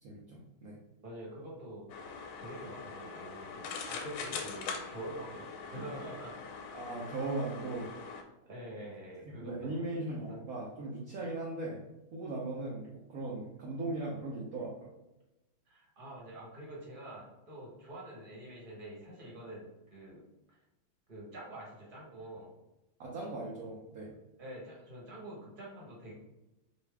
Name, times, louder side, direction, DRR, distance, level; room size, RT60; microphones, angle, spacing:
voice 1, 0.0-0.8 6.7-7.9 9.4-11.8 12.1-14.9 23.0-24.1, right 2 dB, 65° right, -4 dB, 0.9 m, -38 dB
voice 2, 1.0-1.9 2.4-6.7 8.4-9.8 10.3-10.4 15.7-20.6 21.1-22.5 24.4-26.1, right 1 dB, 30° right, -4 dB, 1.1 m, -46 dB
sound 1, 1.9-8.2, left 5 dB, 90° left, 1.4 m, -43 dB
4.2 x 2.6 x 3.4 m, 0.95 s
omnidirectional pair, 2.2 m